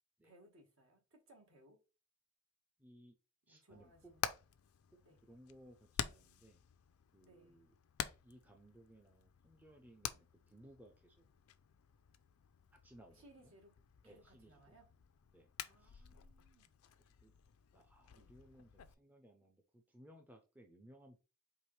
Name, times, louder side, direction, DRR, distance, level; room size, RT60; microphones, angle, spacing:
voice 1, 0.2-1.8 3.5-4.3 5.0-5.2 7.2-7.6 13.1-14.9 15.7-16.7 18.1-18.3, right 1 dB, 65° right, 1.5 m, -65 dB
voice 2, 2.8-3.2 3.5-4.1 5.2-6.7 7.1-7.8 8.2-11.3 12.7-13.5 14.0-14.8 15.3-15.5 15.8-16.1 17.2-17.3 17.7-21.2, right 1 dB, 10° right, 0.5 m, -62 dB
Hammer, 3.7-18.9, left 9 dB, 75° left, 0.4 m, -49 dB
4.6 x 2.9 x 3.2 m
head